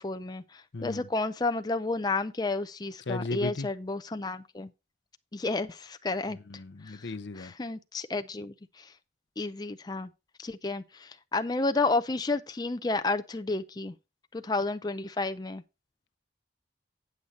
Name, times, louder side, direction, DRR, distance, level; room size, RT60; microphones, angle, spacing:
voice 1, 0.0-4.7 5.3-6.4 6.9-7.1 7.4-8.9 9.4-10.1 10.4-13.9 14.3-15.6, left 3 dB, 20° left, 0.4 m, -31 dB
voice 2, 0.7-1.1 3.1-3.7 6.5-7.5, left 2 dB, 75° left, 0.7 m, -35 dB
8.6 x 7.9 x 4.1 m
head